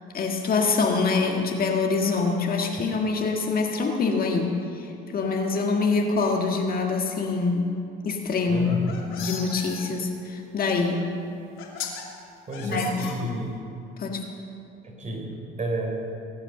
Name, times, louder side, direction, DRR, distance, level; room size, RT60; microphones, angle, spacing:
voice 1, 0.1-7.7 8.0-8.7 9.2-11.1 12.6-12.9 13.2-13.3 14.0-14.2, left 4 dB, 45° left, 2 dB, 1.7 m, -25 dB
sound 1, 8.5-9.8 11.0-11.1 11.6-12.0 12.5-13.6, left 7 dB, 70° left, 2.9 m, -37 dB
voice 2, 8.5-9.1 12.5-13.6 14.8-16.0, right 1 dB, 35° right, 0 dB, 4.1 m, -31 dB
22.0 x 8.8 x 6.7 m, 2.6 s
cardioid pair, 110°, 21 cm